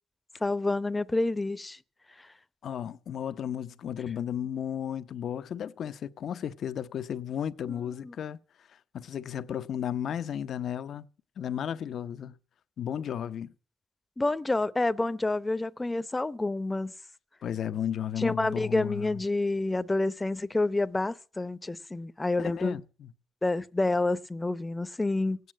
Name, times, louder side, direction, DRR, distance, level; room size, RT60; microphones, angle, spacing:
voice 1, 0.4-1.8 2.2-2.3 8.0-8.1 14.2-16.9 18.2-22.8 23.4-25.4, left 2 dB, 15° left, 0.7 m, -28 dB
voice 2, 2.6-8.4 8.9-11.1 11.4-12.3 12.8-13.5 17.4-19.1 22.4-23.1, left 9 dB, 65° left, 0.7 m, -34 dB
16.0 x 9.4 x 7.5 m
cardioid pair, 90°, 0 cm